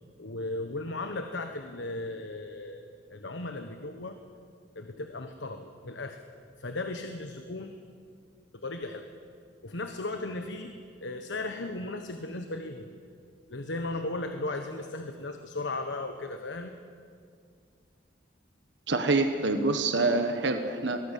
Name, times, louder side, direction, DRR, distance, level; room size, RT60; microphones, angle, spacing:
voice 1, 0.2-4.2 4.7-6.3 6.6-7.7 8.5-9.1 9.6-12.9 13.5-16.7, left 2 dB, 85° left, 6 dB, 1.3 m, -36 dB
voice 2, 18.9-21.1, right 3 dB, 80° right, 6 dB, 1.5 m, -26 dB
24.0 x 19.0 x 8.4 m, 2.3 s
head